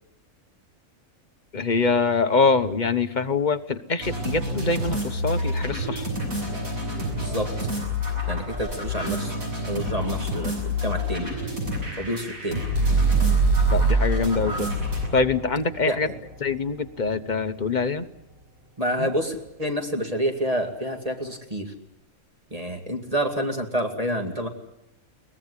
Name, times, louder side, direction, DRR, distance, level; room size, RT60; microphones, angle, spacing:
voice 1, 1.5-6.1 13.7-14.7 15.1-16.1 16.4-18.0 19.0-19.1, left 4 dB, 35° left, 9 dB, 1.1 m, -24 dB
sound 1, 4.0-15.1, left 2 dB, 70° right, 7.7 m, -29 dB
voice 2, 7.1-7.5 8.3-9.3 9.7-11.3 12.0-12.6 15.9-16.0 18.8-21.7 22.5-24.5, equal, 25° right, 3 dB, 2.4 m, -28 dB
sound 2, 12.7-16.7, right 5 dB, 40° right, 5.1 m, -23 dB
23.0 x 19.0 x 9.8 m, 0.86 s
omnidirectional pair, 1.5 m